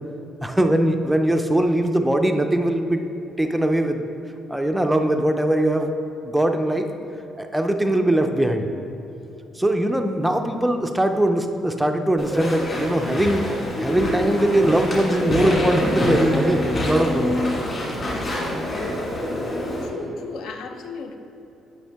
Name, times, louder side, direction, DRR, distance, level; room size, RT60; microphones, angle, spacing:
voice 1, 0.4-3.0 3.4-4.0 4.5-5.9 6.2-6.9 7.4-8.7 9.6-13.5 13.8-16.6 16.9-17.4, right 1 dB, 5° right, 5 dB, 0.4 m, -21 dB
Walk footsteps / Chatter / Squeak, 12.2-19.9, left 1 dB, 25° left, 1.6 m, -25 dB
voice 2, 19.8-21.2, left 4 dB, 80° left, 6 dB, 0.6 m, -34 dB
9.1 x 5.7 x 3.4 m, 3.0 s
cardioid pair, 165°, 0 cm